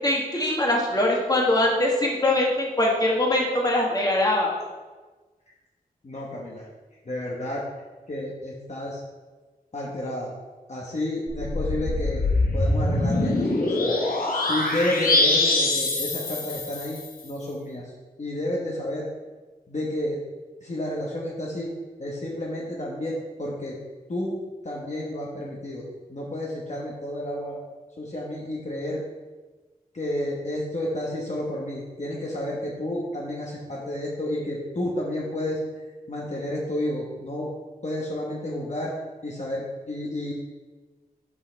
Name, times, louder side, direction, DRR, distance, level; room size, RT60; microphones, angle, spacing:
voice 1, 0.0-4.5, left 1 dB, 25° left, -2 dB, 1.6 m, -22 dB
voice 2, 6.0-6.6 7.0-7.6 8.1-9.0 9.7-10.3 10.7-12.2 12.5-13.9 14.5-17.9 18.2-19.1 19.7-20.2 20.6-21.7 22.0-23.8 24.1-25.8 26.1-27.6 28.0-29.0 29.9-35.6 36.1-37.5 37.8-38.9 39.2-40.3, left 1 dB, 50° left, -4 dB, 1.3 m, -31 dB
sound 1, 11.3-17.1, left 2 dB, 70° left, 1.1 m, -24 dB
6.3 x 5.7 x 4.5 m, 1.3 s
wide cardioid pair, 85°, 15 cm